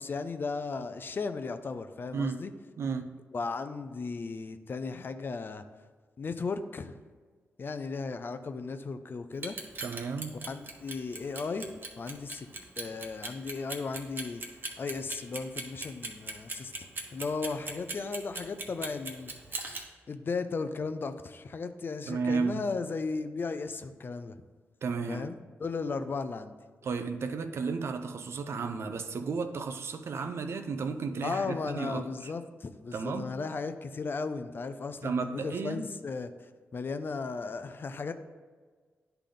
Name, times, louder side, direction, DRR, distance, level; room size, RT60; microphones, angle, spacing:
voice 1, 0.0-2.5 3.3-5.6 6.2-7.0 7.6-9.6 10.4-12.5 12.8-14.4 14.8-16.7 17.1-19.6 20.1-24.4 25.1-26.5 31.2-38.1, left 4 dB, 50° left, 10 dB, 0.5 m, -36 dB
voice 2, 2.8-3.2 9.8-10.4 22.1-22.6 24.8-25.3 26.8-32.3 32.9-33.4 35.0-35.9, right 5 dB, 65° right, 8 dB, 0.6 m, -33 dB
Clock, 9.3-19.8, right 3 dB, 45° right, 1.1 m, -38 dB
10.0 x 3.4 x 3.8 m, 1.5 s
cardioid pair, 75°, 5 cm